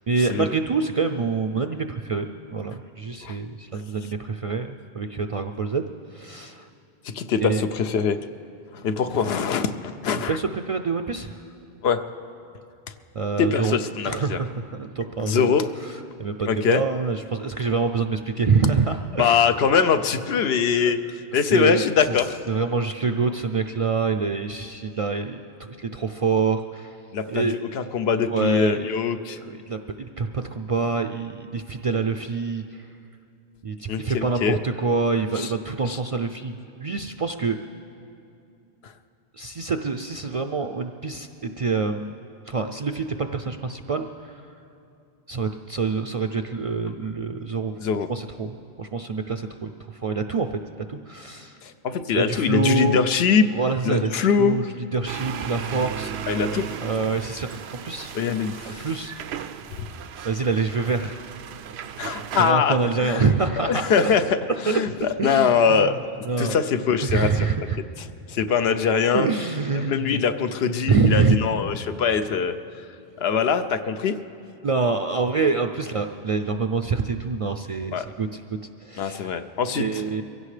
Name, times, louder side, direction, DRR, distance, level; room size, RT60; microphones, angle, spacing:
voice 1, 0.1-5.8 6.1-6.7 7.4-7.6 10.3-11.4 13.1-13.8 14.0-19.4 21.4-22.1 22.5-27.0 27.3-27.6 28.3-28.9 29.4-32.9 33.6-37.6 39.3-42.2 42.5-44.4 45.3-47.8 48.1-50.6 50.9-51.6 52.2-53.0 53.5-56.1 56.8-58.2 58.6-59.1 60.2-61.3 62.4-64.1 64.7-64.8 65.2-66.0 66.2-66.6 67.0-67.8 69.1-70.2 70.9-71.4 74.6-78.4 78.8-79.3 79.7-80.2, right 4 dB, 50° right, 6 dB, 0.4 m, -26 dB
voice 2, 7.1-8.2 8.7-10.4 11.8-12.0 13.4-14.4 15.2-15.7 16.5-16.8 19.2-21.0 21.3-22.4 27.1-29.4 33.9-34.6 35.4-35.5 35.9-36.0 38.8-38.9 47.8-48.1 51.6-53.5 53.8-54.6 56.3-56.7 58.1-58.9 62.0-63.3 63.6-64.4 64.6-66.0 66.4-67.3 68.3-69.3 69.7-72.5 73.2-74.2 77.9-78.1 79.0-80.0, left 6 dB, 75° left, 9 dB, 0.9 m, -22 dB
sound 1, 55.1-62.5, right 8 dB, 90° right, 0.8 m, -35 dB
23.5 x 16.0 x 3.3 m, 2.6 s
omnidirectional pair, 1.1 m